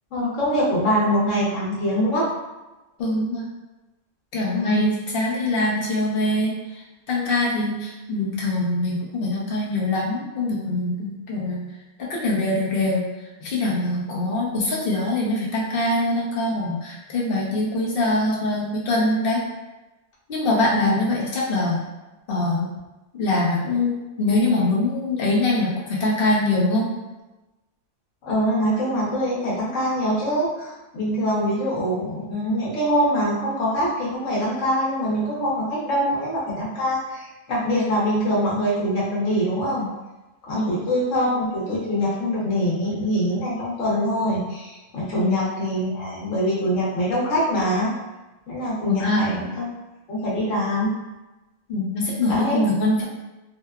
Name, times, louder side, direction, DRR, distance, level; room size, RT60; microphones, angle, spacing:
voice 1, 0.1-2.3 4.5-4.9 20.7-21.0 28.2-39.9 40.4-47.9 48.5-49.7 50.1-50.9 52.3-52.6, equal, 75° left, -7 dB, 1.2 m, -24 dB
voice 2, 3.0-3.5 4.3-11.7 12.0-13.1 13.4-19.4 20.3-21.8 22.3-22.7 23.2-26.9 40.5-40.7 45.1-45.4 48.9-49.2 51.7-53.0, left 2 dB, 55° left, -4 dB, 0.8 m, -23 dB
2.8 x 2.2 x 2.2 m, 1.1 s
omnidirectional pair, 1.3 m